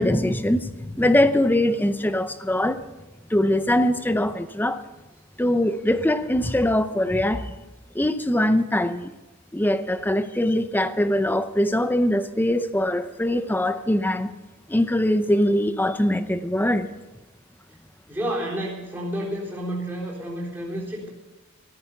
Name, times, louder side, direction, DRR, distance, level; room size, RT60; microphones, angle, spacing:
voice 1, 0.0-2.8 3.3-4.8 5.4-7.6 7.9-9.1 9.5-14.3 14.7-16.9, left 1 dB, 10° left, 11 dB, 0.6 m, -22 dB
voice 2, 18.1-21.1, right 1 dB, 10° right, -5 dB, 3.8 m, -30 dB
14.0 x 13.5 x 5.7 m, 1.1 s
head